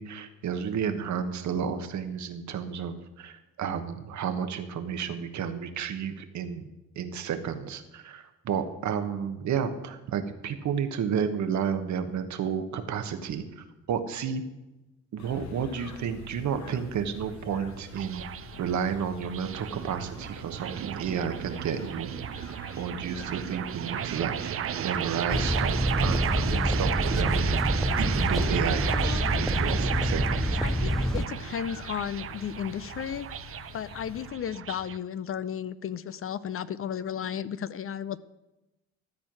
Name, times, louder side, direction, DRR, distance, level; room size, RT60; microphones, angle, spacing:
voice 1, 0.0-6.7 6.9-14.4 15.1-18.3 18.6-22.1 22.8-30.6, right 7 dB, 70° right, 8 dB, 1.3 m, -32 dB
sound 1, 15.2-34.3, left 6 dB, 65° left, 1.5 m, -46 dB
sound 2, 16.0-35.0, right 10 dB, 45° right, 0.6 m, -33 dB
sound 3, 25.3-31.3, equal, ahead, 0.4 m, -27 dB
voice 2, 28.9-29.5 30.6-33.3 33.7-38.2, left 9 dB, 45° left, 16 dB, 0.6 m, -34 dB
13.0 x 4.5 x 8.7 m, 0.99 s
cardioid pair, 90°, 30 cm